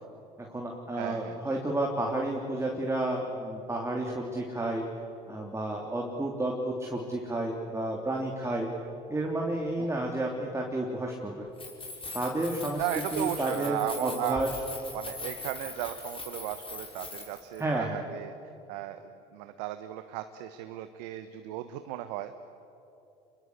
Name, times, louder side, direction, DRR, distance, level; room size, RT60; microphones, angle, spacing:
voice 1, 0.4-4.8 5.3-8.7 9.1-11.5 12.1-12.8 13.1-14.5 17.6-18.0, right 1 dB, 15° right, -1 dB, 3.3 m, -31 dB
voice 2, 1.0-1.6 8.4-8.5 9.8-9.9 12.8-14.4 14.9-18.3 18.7-19.0 19.3-22.4, right 13 dB, 75° right, 9 dB, 1.2 m, -35 dB
Keys jangling, 11.5-17.6, left 3 dB, 25° left, 5.9 m, -41 dB
28.0 x 22.5 x 8.2 m, 2.8 s
hypercardioid pair, 75°, 21 cm